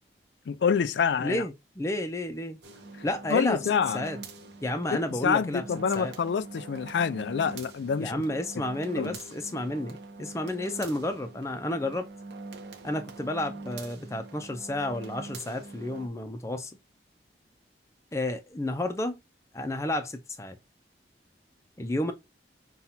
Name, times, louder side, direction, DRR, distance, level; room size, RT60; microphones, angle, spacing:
voice 1, 0.5-1.4 3.3-4.0 4.9-8.2 9.0-9.2, left 6 dB, 80° left, 0.4 m, -27 dB
voice 2, 1.2-2.6 3.0-3.7 3.9-4.2 4.6-5.6 5.9-6.1 8.0-12.1 12.8-16.7 18.1-19.2 19.5-20.6 21.8-22.1, left 1 dB, 15° left, 0.4 m, -31 dB
sound 1, 2.6-16.1, right 3 dB, 70° right, 0.8 m, -44 dB
5.7 x 2.3 x 2.7 m
head